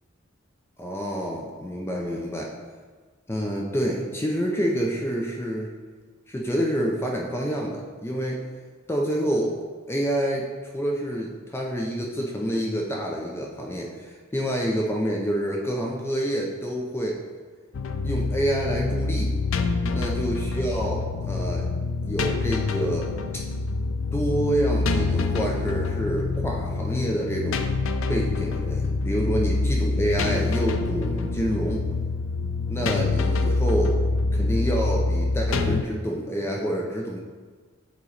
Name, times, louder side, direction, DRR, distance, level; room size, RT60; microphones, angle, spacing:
voice 1, 0.8-2.5 3.3-5.7 6.3-8.4 8.9-9.5 9.9-10.5 10.7-17.2 18.0-19.4 19.8-21.7 22.0-23.1 24.1-27.6 28.1-31.9 32.7-34.0 34.3-37.2, equal, 10° left, -1 dB, 0.5 m, -27 dB
sound 1, 17.7-35.8, left 3 dB, 75° left, 0.4 m, -26 dB
8.4 x 3.0 x 3.9 m, 1.5 s
head